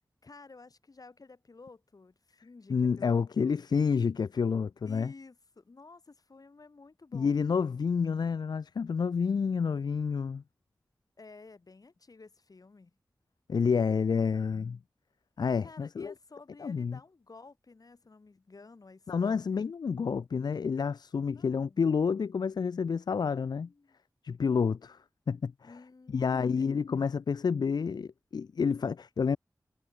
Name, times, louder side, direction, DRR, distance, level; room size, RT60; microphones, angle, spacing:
voice 1, 0.2-3.6 4.8-7.4 11.2-13.0 15.6-19.7 21.3-21.8 23.1-24.0 25.6-26.8, left 3 dB, 60° left, 3.0 m, -53 dB
voice 2, 2.7-5.1 7.1-10.4 13.5-14.8 15.4-16.1 16.6-17.0 19.1-23.7 24.2-25.0 25.3-25.5 26.1-29.4, left 5 dB, 75° left, 0.4 m, -29 dB
wide cardioid pair, 55°, 7 cm